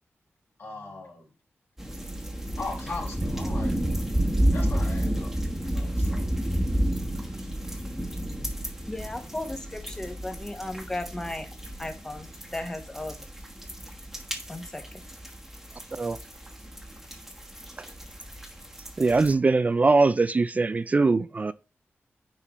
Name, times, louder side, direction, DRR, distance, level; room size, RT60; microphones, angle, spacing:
voice 1, 0.6-1.3 2.6-4.1 4.5-6.3, left 3 dB, 55° left, 3.4 m, -39 dB
sound 1, 1.8-19.3, right 1 dB, 5° right, 1.2 m, -31 dB
voice 2, 8.9-11.5 11.8-13.2 14.5-15.0, left 1 dB, 15° left, 1.1 m, -35 dB
voice 3, 19.0-21.5, right 3 dB, 35° right, 0.4 m, -22 dB
9.7 x 3.8 x 3.1 m
wide cardioid pair, 120°, 5 cm